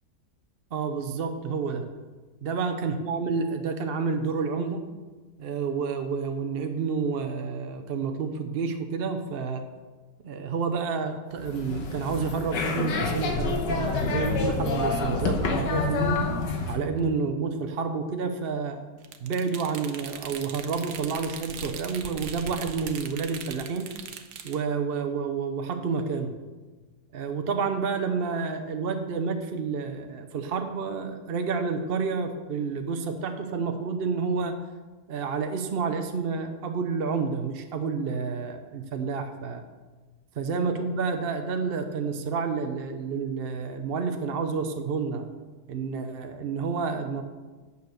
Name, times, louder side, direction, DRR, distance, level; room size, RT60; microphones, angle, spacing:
voice 1, 0.7-1.9 2.4-4.8 5.4-9.6 10.2-16.3 16.7-18.8 19.2-23.9 24.4-26.3 27.1-34.5 35.1-39.6 40.4-45.3 45.7-47.2, right 5 dB, 50° right, 6 dB, 0.7 m, -29 dB
sound 1, 11.4-16.8, left 3 dB, 80° left, 1.7 m, -28 dB
sound 2, 19.0-24.6, right 7 dB, 70° right, 1.3 m, -40 dB
9.1 x 6.9 x 6.4 m, 1.3 s
omnidirectional pair, 1.9 m